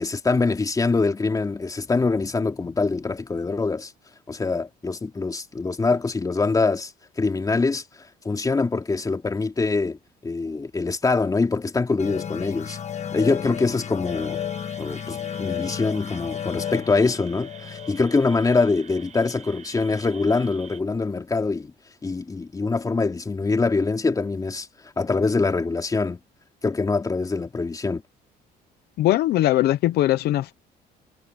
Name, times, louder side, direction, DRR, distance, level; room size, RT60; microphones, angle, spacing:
voice 1, 0.0-3.9 4.3-6.9 7.2-7.8 8.2-12.8 13.1-14.4 14.8-21.7 22.0-24.7 25.0-26.2 26.6-28.0, left 3 dB, 20° left, 3.1 m, -24 dB
sound 1, 12.0-19.3, left 9 dB, 45° left, 1.6 m, -33 dB
sound 2, 14.0-20.8, right 7 dB, 45° right, 6.5 m, -47 dB
voice 2, 29.0-30.5, left 14 dB, 70° left, 0.8 m, -20 dB
cardioid pair, 110°, 17 cm